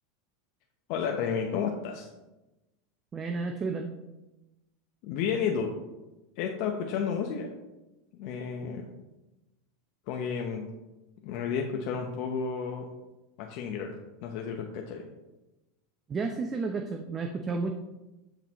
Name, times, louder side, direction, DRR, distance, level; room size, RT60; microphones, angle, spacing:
voice 1, 0.9-2.1 5.0-5.7 6.4-7.5 8.2-8.8 10.1-10.7 11.2-12.9 13.4-15.1, left 6 dB, 60° left, 2 dB, 0.8 m, -32 dB
voice 2, 3.1-4.0 16.1-17.7, right 4 dB, 25° right, 5 dB, 0.6 m, -32 dB
12.0 x 3.9 x 3.0 m, 1.0 s
supercardioid pair, 115°, 0 cm